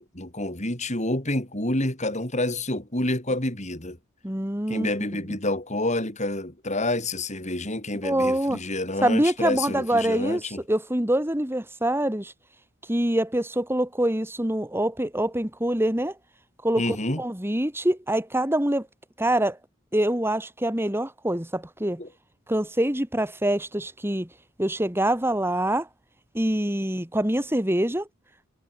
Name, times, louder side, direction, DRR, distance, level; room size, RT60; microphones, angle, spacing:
voice 1, 0.0-4.0 4.7-10.6 16.8-17.2 22.0-22.1, left 1 dB, 35° left, 6.0 m, -28 dB
voice 2, 4.2-4.9 8.0-8.6 9.0-10.4 10.7-12.3 12.9-16.1 16.6-18.9 19.2-19.6 19.9-22.0 22.5-24.3 24.6-25.9 26.3-28.1, right 1 dB, 10° right, 2.2 m, -25 dB
head